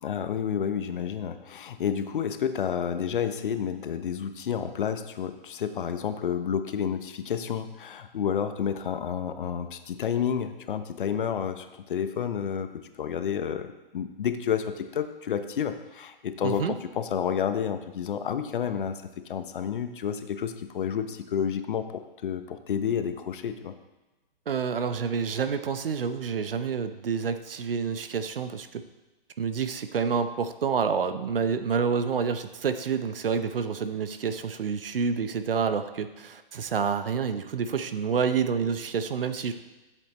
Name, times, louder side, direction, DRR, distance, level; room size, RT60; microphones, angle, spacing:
voice 1, 0.0-12.7 13.0-19.0 19.3-23.7, left 8 dB, 60° left, 9 dB, 0.9 m, -30 dB
voice 2, 16.4-16.7 24.5-28.8 29.4-39.5, right 6 dB, 70° right, 10 dB, 0.9 m, -28 dB
14.5 x 7.9 x 3.1 m, 1.1 s
figure-of-eight pair, 125°, 29 cm